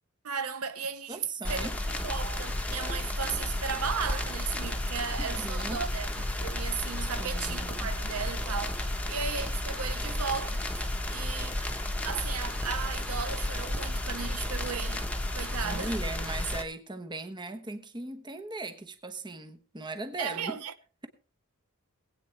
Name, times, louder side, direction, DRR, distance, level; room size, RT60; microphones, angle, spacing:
voice 1, 0.2-11.7 12.0-15.9 20.2-20.7, right 6 dB, 85° right, 0.9 m, -36 dB
voice 2, 1.1-1.7 5.2-5.9 7.2-7.9 15.6-20.6, right 2 dB, 20° right, 1.1 m, -38 dB
sound 1, 1.4-16.6, left 1 dB, 5° left, 1.2 m, -32 dB
21.5 x 8.8 x 3.3 m
head